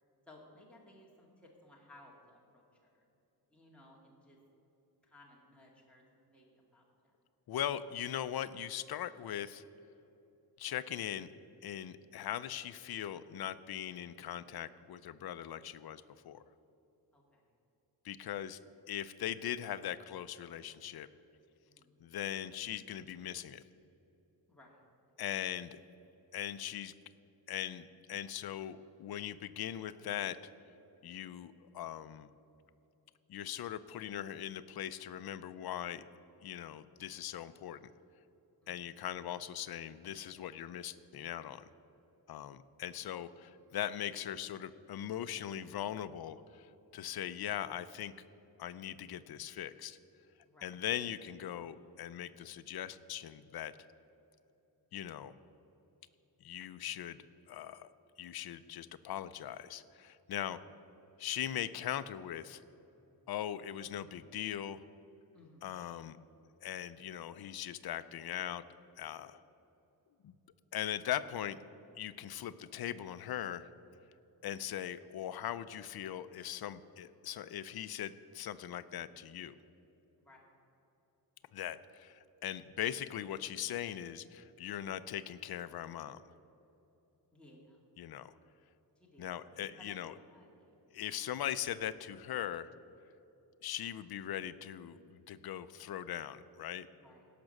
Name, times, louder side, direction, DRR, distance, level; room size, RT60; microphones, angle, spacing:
voice 1, 0.3-3.0 3.5-4.4 5.0-6.9 17.1-17.4 21.6-22.0 24.5-24.8 38.6-39.0 50.5-50.7 65.3-65.7 80.2-80.4 87.3-87.8 89.0-90.7 97.0-97.3, left 1 dB, 5° left, -4 dB, 2.0 m, -60 dB
voice 2, 7.5-9.6 10.6-11.3 11.6-16.4 18.0-18.6 18.9-21.1 22.0-23.6 25.2-25.8 26.3-26.9 27.5-30.4 31.0-32.3 33.3-36.0 36.4-37.9 38.7-41.7 42.3-48.1 48.6-50.0 50.6-53.7 54.9-55.3 56.4-57.2 57.5-57.9 58.2-60.6 61.2-62.6 63.3-64.8 65.6-66.2 66.6-68.6 69.0-69.4 70.2-70.3 70.7-71.6 72.0-73.7 74.4-79.5 81.5-86.2 88.0-88.3 89.2-90.1 90.9-92.7 93.6-96.9, left 11 dB, 70° left, 13 dB, 0.5 m, -40 dB
17.0 x 6.0 x 6.5 m, 2.9 s
wide cardioid pair, 170°, 39 cm